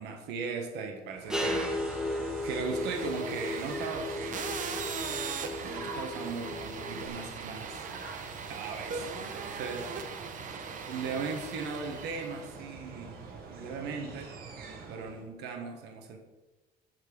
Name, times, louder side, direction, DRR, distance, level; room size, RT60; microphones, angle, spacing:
voice 1, 0.0-4.5 5.6-7.9 8.2-10.0 10.9-14.3 14.9-16.2, right 5 dB, 85° right, 4 dB, 1.4 m, -38 dB
sound 1, 1.0-15.3, right 4 dB, 65° right, 1.5 m, -45 dB
sound 2, 1.3-7.1, left 1 dB, 5° right, 1.0 m, -35 dB
sound 3, 2.4-12.6, right 6 dB, 50° right, 1.0 m, -40 dB
8.6 x 4.5 x 6.1 m, 1.2 s
cardioid pair, 110°, 17 cm